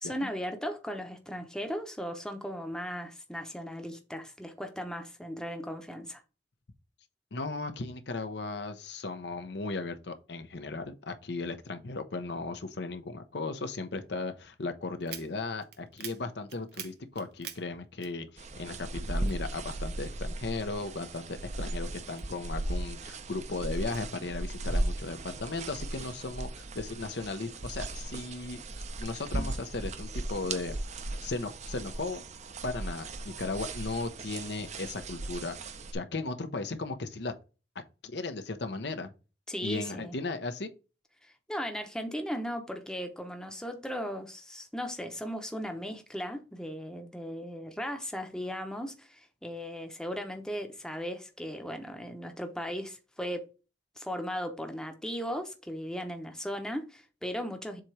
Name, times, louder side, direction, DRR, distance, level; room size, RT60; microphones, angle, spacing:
voice 1, 0.0-6.2 39.5-40.2 41.2-53.5 54.0-57.8, equal, 5° left, 0.8 m, -37 dB
voice 2, 7.3-28.6 29.0-30.8 31.2-32.2 32.6-37.3 38.0-39.1 39.6-40.7, left 3 dB, 65° left, 0.8 m, -36 dB
sound 1, 15.0-18.7 18.9-20.3 20.7-22.8 23.3-24.0, right 10 dB, 60° right, 0.9 m, -46 dB
sound 2, 18.4-35.9, right 2 dB, 40° right, 0.6 m, -37 dB
7.5 x 3.0 x 4.7 m
head